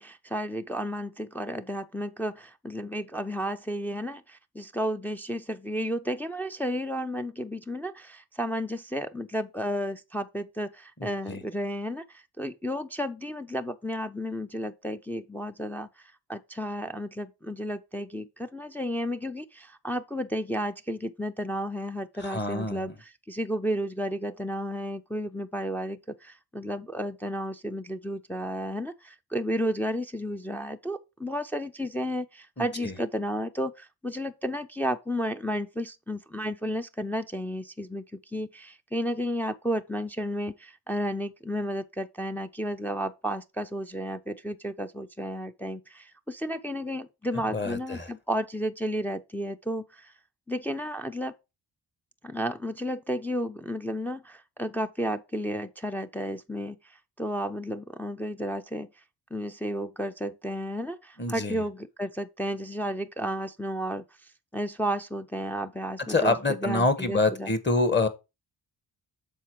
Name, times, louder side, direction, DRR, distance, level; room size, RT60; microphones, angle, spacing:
voice 1, 0.0-38.0 38.3-50.1 50.5-51.3 52.2-56.8 57.2-58.9 59.3-64.0 64.5-67.5, equal, 5° left, 0.5 m, -32 dB
voice 2, 11.0-11.4 22.2-22.9 32.6-32.9 47.5-48.1 61.2-61.6 66.1-68.1, left 2 dB, 25° left, 1.4 m, -26 dB
7.1 x 4.2 x 4.7 m
cardioid pair, 80°, 41 cm